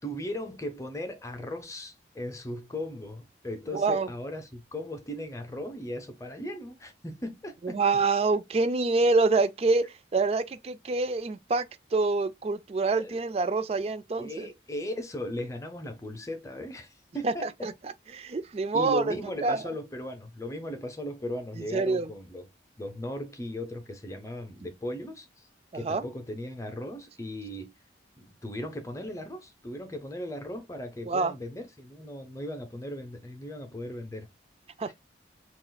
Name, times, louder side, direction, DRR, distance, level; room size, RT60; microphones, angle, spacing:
voice 1, 0.0-7.8 13.0-13.2 14.2-17.7 18.7-22.5 22.8-25.5 25.7-27.7 28.2-34.3 34.9-35.0, left 1 dB, 15° left, 0.6 m, -37 dB
voice 2, 3.7-4.1 7.6-9.8 10.1-11.6 11.9-14.5 17.2-17.3 17.6-17.7 18.1-19.1 19.4-19.6 21.7-22.1 25.8-26.0 31.0-31.3 34.8-34.9, right 3 dB, 35° right, 0.3 m, -26 dB
6.0 x 2.4 x 2.3 m
head